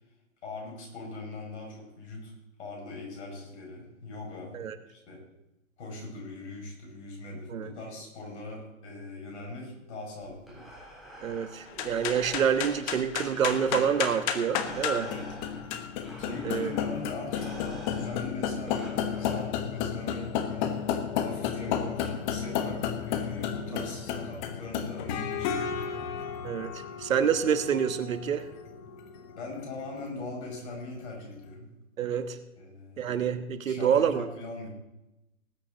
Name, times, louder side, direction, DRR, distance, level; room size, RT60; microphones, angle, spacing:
voice 1, 0.4-2.3 2.6-5.3 5.8-10.7 15.0-15.3 16.2-20.7 21.2-26.4 29.3-31.7 32.6-33.1 33.6-34.7, left 2 dB, 50° left, 0 dB, 5.9 m, -41 dB
Breathing, 10.2-19.9, right 1 dB, ahead, 3.3 m, -47 dB
voice 2, 11.2-15.1 16.4-16.7 23.7-23.8 26.4-28.4 32.0-32.4 33.0-34.2, right 8 dB, 65° right, 11 dB, 1.3 m, -27 dB
sound 1, 11.7-31.2, left 8 dB, 30° left, 1.1 m, -33 dB
19.0 x 8.9 x 3.9 m, 0.91 s
figure-of-eight pair, 125°, 43 cm